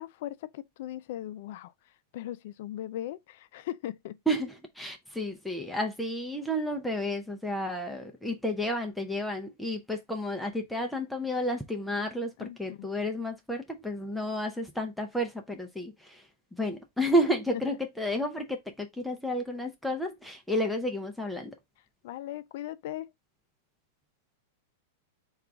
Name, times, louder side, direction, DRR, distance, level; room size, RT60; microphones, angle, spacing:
voice 1, 0.0-1.7 2.1-4.2 12.4-12.9 17.5-17.6 22.0-23.1, left 13 dB, 60° left, 0.4 m, -38 dB
voice 2, 4.3-21.5, equal, ahead, 0.5 m, -31 dB
3.7 x 2.4 x 4.6 m
supercardioid pair, 145°, 0 cm